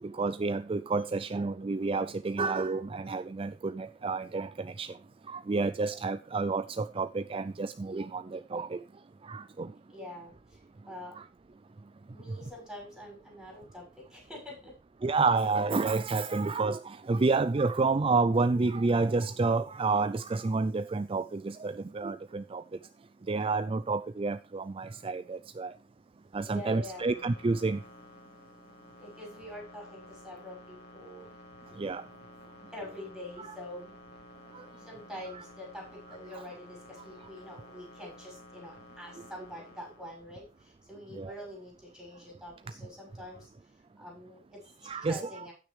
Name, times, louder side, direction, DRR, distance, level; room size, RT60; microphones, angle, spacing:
voice 1, 0.0-5.0 5.3-8.8 9.2-9.7 11.2-11.3 15.0-22.6 23.3-25.7 26.3-27.8 31.8-32.0 33.4-33.5 34.5-34.6 36.3-36.4 41.1-41.3 44.8-45.2, right 3 dB, 30° right, 0.4 m, -29 dB
voice 2, 9.9-10.6 10.9-11.2 12.1-14.7 26.4-27.1 29.0-31.3 32.7-34.0 34.8-43.5 44.0-45.5, left 1 dB, ahead, 6.4 m, -45 dB
sound 1, 26.5-40.6 42.8-43.5, left 1 dB, 55° left, 2.8 m, -53 dB
15.5 x 6.5 x 3.3 m
head